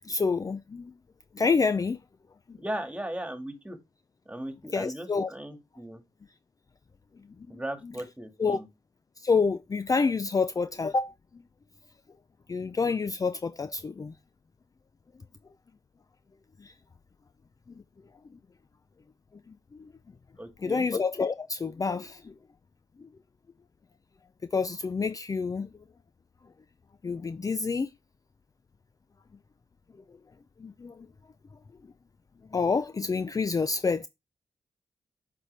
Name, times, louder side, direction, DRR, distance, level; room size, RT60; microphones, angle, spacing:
voice 1, 0.0-0.9 1.3-2.0 2.5-2.6 4.7-5.3 7.5-7.6 8.4-8.6 9.2-11.4 12.5-14.1 16.6-16.7 19.7-19.9 20.6-22.3 23.0-23.1 24.5-25.7 27.0-27.9 30.6-31.1 32.5-34.1, left 4 dB, 30° left, 0.5 m, -28 dB
voice 2, 2.6-3.8 4.3-6.0 7.5-8.7 20.4-20.8, right 1 dB, 10° right, 1.8 m, -37 dB
7.4 x 4.3 x 3.3 m
cardioid pair, 60°, 11 cm